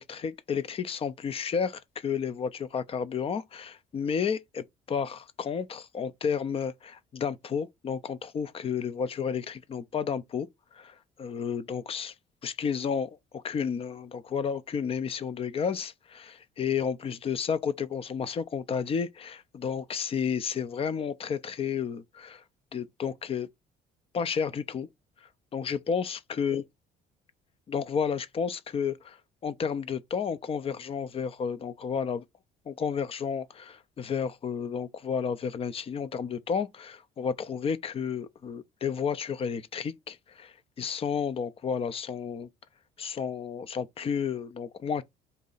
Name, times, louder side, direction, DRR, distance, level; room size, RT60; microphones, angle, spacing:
voice 1, 0.0-10.5 10.7-12.1 12.4-22.4 22.7-23.5 24.1-24.9 25.5-26.6 27.7-29.2 29.4-32.2 32.7-42.5 43.0-45.0, left 6 dB, 35° left, 0.5 m, -32 dB
4.1 x 2.7 x 3.9 m
cardioid pair, 110°, 17 cm